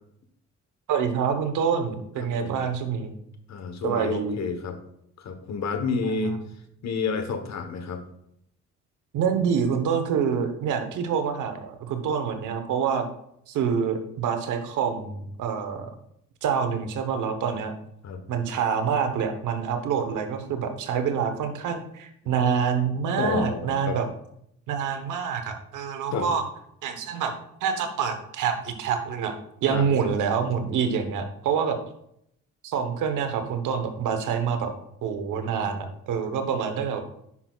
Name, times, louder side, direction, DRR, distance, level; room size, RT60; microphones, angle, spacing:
voice 1, 0.9-3.1 3.8-4.4 9.1-13.1 13.5-15.9 16.4-17.7 18.3-24.0 24.7-26.4 26.8-27.3 27.6-31.8 32.6-34.7 35.0-37.0, right 6 dB, 85° right, 7 dB, 1.1 m, -26 dB
voice 2, 2.2-2.6 3.5-4.8 5.2-6.4 6.8-8.0 18.0-18.2 23.2-24.0 26.1-26.3 29.7-29.9, left 4 dB, 60° left, 7 dB, 1.2 m, -29 dB
9.7 x 6.0 x 2.4 m, 0.74 s
cardioid pair, 90°, 30 cm